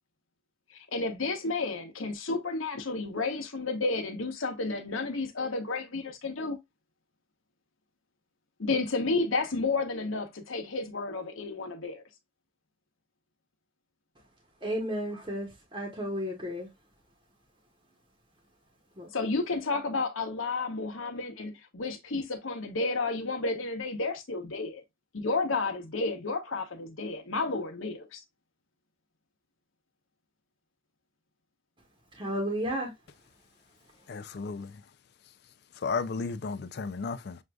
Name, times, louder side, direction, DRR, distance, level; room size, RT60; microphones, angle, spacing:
voice 1, 0.9-6.6 8.6-12.0 19.1-24.8 25.1-28.2, left 3 dB, 80° left, 0.9 m, -31 dB
voice 2, 14.6-16.7 19.0-19.1 32.1-32.9, equal, 25° right, 1.0 m, -33 dB
voice 3, 34.1-34.7 35.8-37.4, left 4 dB, 50° left, 0.4 m, -33 dB
6.3 x 2.5 x 2.3 m
head